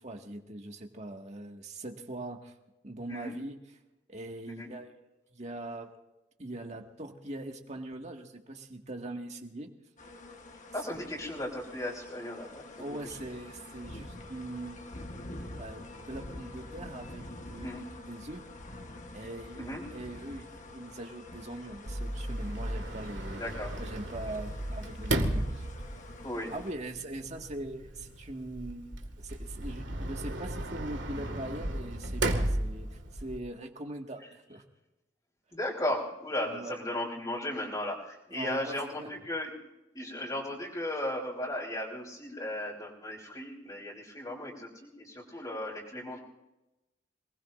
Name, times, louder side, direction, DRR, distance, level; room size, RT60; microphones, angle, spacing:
voice 1, 0.0-2.5 2.8-3.6 4.1-4.9 5.3-5.9 6.4-9.7 12.8-14.8 15.6-18.4 19.1-23.4 23.8-25.7 26.5-28.9 29.2-34.6 36.5-36.8 38.3-39.1, right 1 dB, 35° right, 3 dB, 1.8 m, -41 dB
sound 1, 10.0-26.7, left 2 dB, 40° left, 1.3 m, -46 dB
voice 2, 10.7-13.3 17.6-17.8 19.6-19.8 23.4-23.7 26.2-26.5 35.5-39.5 39.9-46.2, left 1 dB, 25° left, -6 dB, 3.1 m, -36 dB
Sliding door, 21.9-33.4, right 1 dB, 85° right, 2.0 m, -35 dB
27.0 x 19.5 x 2.6 m, 0.99 s
head